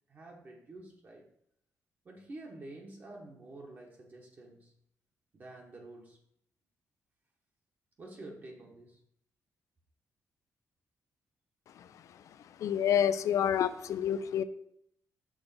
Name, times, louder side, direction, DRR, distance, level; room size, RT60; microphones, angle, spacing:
voice 1, 0.1-1.2 2.0-4.7 5.3-6.2 8.0-9.0, right 2 dB, 35° right, -1 dB, 1.1 m, -49 dB
voice 2, 12.6-14.4, left 9 dB, 70° left, 13 dB, 0.4 m, -28 dB
6.2 x 3.8 x 5.6 m, 0.73 s
wide cardioid pair, 165°, 6 cm